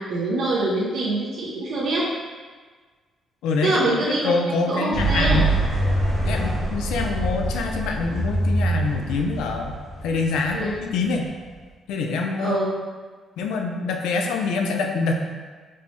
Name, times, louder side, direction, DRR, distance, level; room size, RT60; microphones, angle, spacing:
voice 1, 0.0-2.1 3.6-4.3 4.7-5.4 10.5-10.8 12.4-12.7, right 2 dB, 70° right, -7 dB, 0.6 m, -24 dB
voice 2, 3.4-5.5 6.3-11.3 11.9-12.9 13.4-15.1, left 4 dB, 90° left, 2 dB, 0.3 m, -25 dB
sound 1, 4.9-11.3, right 2 dB, 30° right, 1.0 m, -25 dB
4.2 x 2.0 x 3.0 m, 1.5 s
cardioid pair, 90°, 0 cm